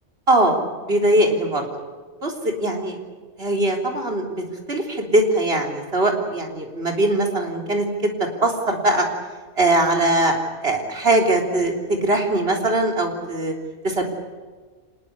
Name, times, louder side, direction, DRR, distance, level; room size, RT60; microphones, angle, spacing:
voice 1, 0.3-0.6 0.8-1.7 2.2-3.0 3.4-9.1 9.6-13.5 13.8-14.0, right 1 dB, 55° right, 2 dB, 4.0 m, -21 dB
25.5 x 20.5 x 8.3 m, 1.4 s
omnidirectional pair, 1.3 m